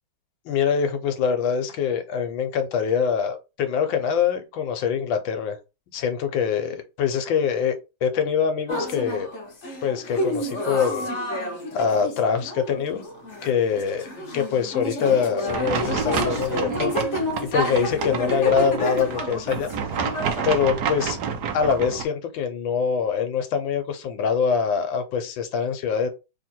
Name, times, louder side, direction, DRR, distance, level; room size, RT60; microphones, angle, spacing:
voice 1, 0.4-5.6 5.9-9.3 9.8-11.1 11.7-13.0 13.4-14.1 14.3-16.9 17.4-19.7 20.4-21.2 21.5-26.1, left 6 dB, 75° left, 1.4 m, -24 dB
sound 1, 8.7-20.5, equal, 45° left, 1.0 m, -30 dB
sound 2, 15.5-22.0, right 7 dB, 65° right, 1.1 m, -29 dB
3.3 x 2.9 x 4.2 m
omnidirectional pair, 2.2 m